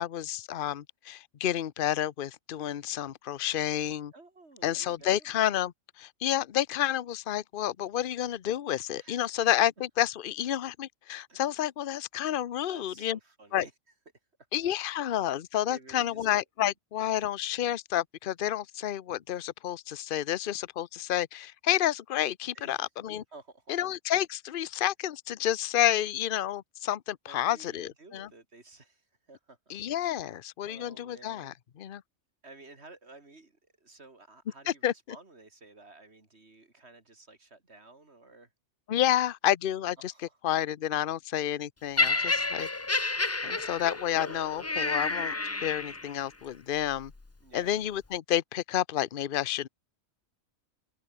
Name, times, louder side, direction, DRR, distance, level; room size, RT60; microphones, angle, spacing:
voice 1, 0.0-4.1 4.6-13.2 13.5-13.6 14.5-23.2 23.7-28.3 29.7-32.0 34.7-34.9 38.9-40.1 40.4-42.1 42.5-42.7 43.4-45.3 45.6-47.1 47.5-49.7, left 12 dB, 50° left, 0.8 m, -30 dB
voice 2, 4.1-5.3 9.0-9.5 11.3-11.7 12.6-14.3 14.7-14.8 15.6-16.3 22.5-22.9 23.3-23.8 27.3-29.6 30.1-32.0 32.4-38.5 40.0-40.4 41.9-42.6 43.4-43.9 46.0-46.1 47.4-47.8, right 3 dB, 50° right, 3.6 m, -53 dB
Laughter, 42.0-46.2 47.0-47.2, left 3 dB, 20° left, 0.4 m, -30 dB
omnidirectional pair, 1.4 m